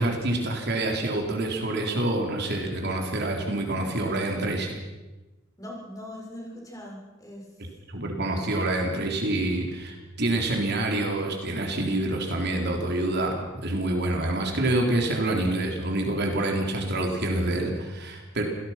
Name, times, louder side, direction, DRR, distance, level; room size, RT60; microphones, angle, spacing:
voice 1, 0.0-4.7 7.9-18.4, right 1 dB, 55° right, 2 dB, 3.9 m, -27 dB
voice 2, 5.6-7.6, left 1 dB, 20° left, -2 dB, 6.8 m, -41 dB
27.0 x 18.5 x 6.0 m, 1.1 s
head